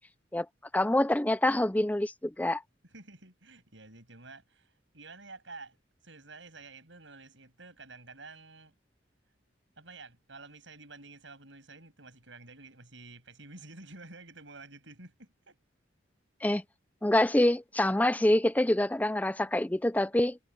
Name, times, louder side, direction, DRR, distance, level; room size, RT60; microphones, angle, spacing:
voice 1, 0.7-2.6 16.4-16.6 17.0-20.4, left 1 dB, 10° left, 0.5 m, -26 dB
voice 2, 2.8-8.8 9.8-15.6, right 3 dB, 70° right, 7.8 m, -50 dB
head